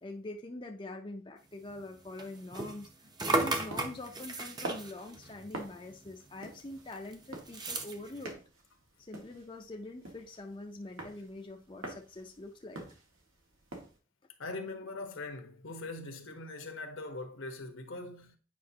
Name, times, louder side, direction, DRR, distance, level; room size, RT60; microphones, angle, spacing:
voice 1, 0.0-2.9 3.3-8.4 9.1-12.8, left 2 dB, 25° left, 0.5 m, -44 dB
sound 1, 1.7-6.3 6.6-8.3, right 2 dB, 20° right, 0.7 m, -36 dB
sound 2, 3.7-14.0, right 2 dB, 90° right, 1.7 m, -47 dB
voice 2, 14.4-18.4, left 2 dB, 70° left, 1.2 m, -41 dB
8.6 x 5.1 x 2.8 m
head